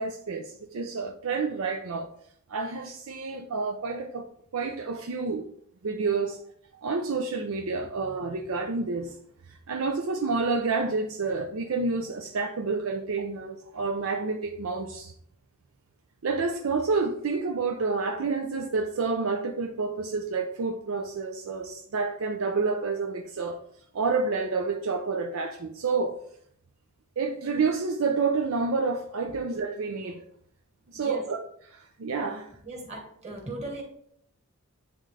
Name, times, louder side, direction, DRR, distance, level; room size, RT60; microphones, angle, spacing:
voice 1, 0.0-2.1 2.5-4.3 4.5-5.4 5.8-6.4 6.7-9.2 9.5-15.1 16.2-23.6 23.9-26.2 27.2-30.2 30.9-31.4 31.7-32.5, right 4 dB, 65° right, 0.5 m, -29 dB
voice 2, 30.9-31.2 32.6-33.8, right 2 dB, 30° right, 1.9 m, -38 dB
9.4 x 3.6 x 3.3 m
head